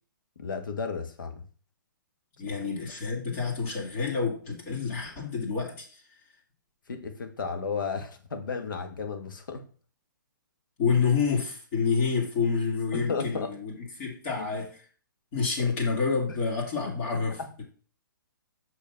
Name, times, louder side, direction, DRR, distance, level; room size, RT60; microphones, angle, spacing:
voice 1, 0.4-1.4 2.5-2.6 6.9-9.6 12.9-13.5 14.4-14.5 15.6-15.7 16.3-16.4 17.1-17.5, left 5 dB, 70° left, 1.7 m, -34 dB
voice 2, 2.4-6.0 10.8-14.8 15.3-17.6, left 5 dB, 35° left, 2.8 m, -28 dB
6.4 x 5.4 x 5.8 m
hypercardioid pair, 140°, 11 cm